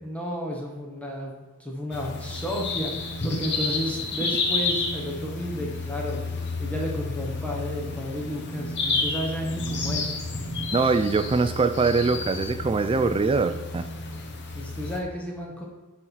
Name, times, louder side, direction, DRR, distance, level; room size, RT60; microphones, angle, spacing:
voice 1, 0.0-6.2 6.6-10.1 14.5-15.6, equal, 5° left, -2 dB, 1.1 m, -32 dB
sound 1, 1.9-15.0, left 3 dB, 50° left, 1.0 m, -31 dB
voice 2, 10.7-13.9, right 4 dB, 25° right, 11 dB, 0.3 m, -23 dB
10.5 x 4.2 x 4.6 m, 1.3 s
head